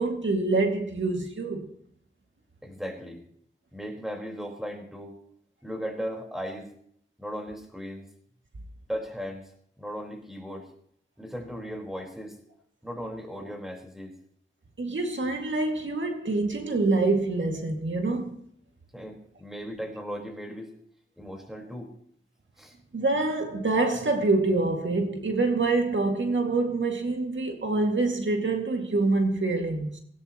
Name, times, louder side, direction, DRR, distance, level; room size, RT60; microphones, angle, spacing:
voice 1, 0.0-1.7 14.8-18.4 22.9-30.0, right 3 dB, 70° right, 2.2 m, -26 dB
voice 2, 2.6-3.2 3.7-5.2 5.6-6.7 7.2-8.1 8.9-9.5 9.8-10.7 11.2-12.4 12.8-14.1 18.9-20.7 21.2-21.9 22.6-22.7, equal, ahead, 4.4 m, -37 dB
19.0 x 17.5 x 3.0 m
wide cardioid pair, 80°, 20 cm